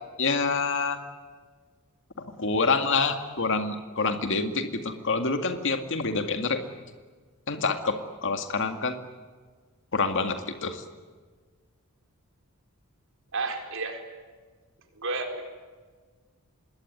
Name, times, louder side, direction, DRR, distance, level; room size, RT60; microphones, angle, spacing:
voice 1, 0.2-1.0 2.4-6.6 7.5-9.0 9.9-10.4 10.6-10.8, left 4 dB, 60° left, 6 dB, 2.1 m, -27 dB
voice 2, 13.3-14.0 15.0-15.5, right 3 dB, 60° right, 4 dB, 4.5 m, -31 dB
26.5 x 21.5 x 9.8 m, 1.5 s
head